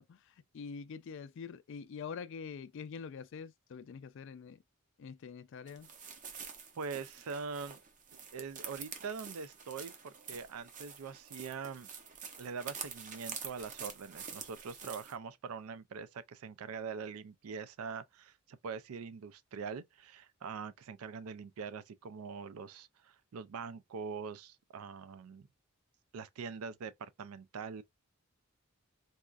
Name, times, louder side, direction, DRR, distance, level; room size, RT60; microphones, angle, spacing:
voice 1, 0.0-4.6 5.0-5.9, left 6 dB, 60° left, 0.3 m, -45 dB
sound 1, 5.7-15.2, right 6 dB, 35° right, 0.6 m, -47 dB
voice 2, 6.8-7.8 8.3-11.9 12.4-25.5 26.1-27.8, right 5 dB, 85° right, 0.4 m, -43 dB
4.1 x 2.4 x 2.3 m
head